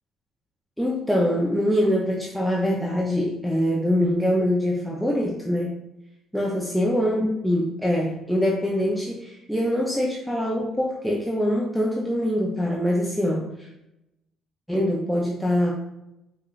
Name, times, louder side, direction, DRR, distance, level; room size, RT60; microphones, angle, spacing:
voice 1, 0.8-5.7 6.3-13.7 14.7-15.7, equal, ahead, -3 dB, 0.6 m, -24 dB
4.7 x 2.4 x 2.5 m, 0.87 s
supercardioid pair, 70°, 0 cm